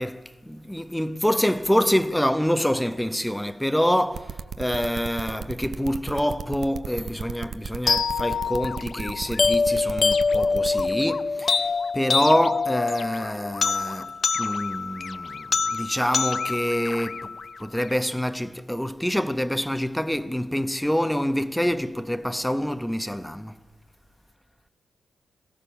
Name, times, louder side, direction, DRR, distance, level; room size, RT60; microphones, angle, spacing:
voice 1, 0.0-11.6 11.9-14.1 14.4-17.3 17.6-23.5, equal, 5° left, 0.9 m, -26 dB
sound 1, 4.1-10.9, right 7 dB, 65° right, 0.9 m, -34 dB
sound 2, 7.9-17.9, left 4 dB, 45° left, 0.6 m, -25 dB
26.0 x 17.0 x 7.0 m
cardioid pair, 105°, 0 cm